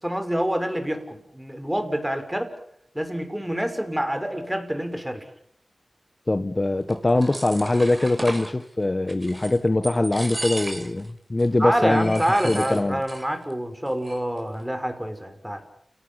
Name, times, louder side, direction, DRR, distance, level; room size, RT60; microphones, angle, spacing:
voice 1, 0.0-2.5 2.9-5.2 11.6-15.6, equal, 10° right, 8 dB, 6.2 m, -27 dB
voice 2, 6.3-13.0, left 2 dB, 35° left, 10 dB, 1.5 m, -22 dB
sound 1, 6.9-8.5 9.1-9.6 9.8-11.1 11.4-11.5 11.9-13.3 13.5-13.6 13.9-14.4, right 1 dB, 30° right, 5.9 m, -35 dB
29.5 x 18.5 x 8.9 m, 0.72 s
cardioid pair, 40°, 0 cm